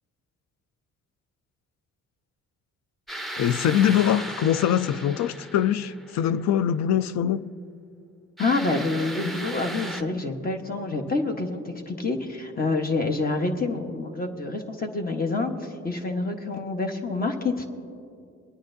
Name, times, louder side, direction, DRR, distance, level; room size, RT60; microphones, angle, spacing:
sound 1, 3.1-6.3 8.4-10.0, right 1 dB, ahead, 0.7 m, -36 dB
voice 1, 3.4-7.5, left 10 dB, 65° left, 0.4 m, -23 dB
voice 2, 8.4-17.7, left 3 dB, 30° left, 1.0 m, -27 dB
23.5 x 9.4 x 2.6 m
cardioid pair, 90°, 30 cm